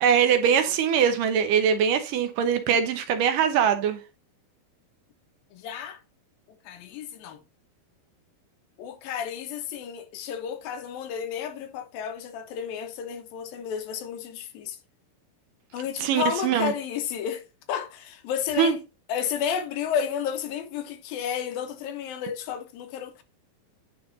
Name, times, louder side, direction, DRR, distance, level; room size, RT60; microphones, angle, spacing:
voice 1, 0.0-4.0 16.0-16.7 18.6-18.8, right 8 dB, 75° right, 2.3 m, -22 dB
voice 2, 5.5-6.0 6.6-7.4 8.8-14.8 15.7-18.8 19.1-23.2, left 8 dB, 80° left, 2.8 m, -32 dB
10.0 x 4.0 x 3.9 m
omnidirectional pair, 4.2 m